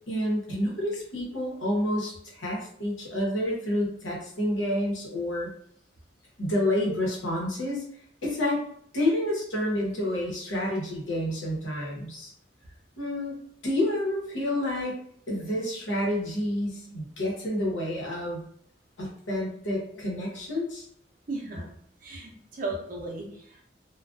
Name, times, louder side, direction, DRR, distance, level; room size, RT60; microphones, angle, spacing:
voice 1, 0.1-5.5 6.4-7.8 8.2-8.6 8.9-12.3 13.0-13.3 13.6-15.0 15.3-18.4 19.0-20.8, left 1 dB, 90° left, -3 dB, 0.9 m, -29 dB
voice 2, 21.3-21.7 22.0-23.6, right 2 dB, 45° right, -1 dB, 0.5 m, -36 dB
2.4 x 2.2 x 2.3 m, 0.66 s
head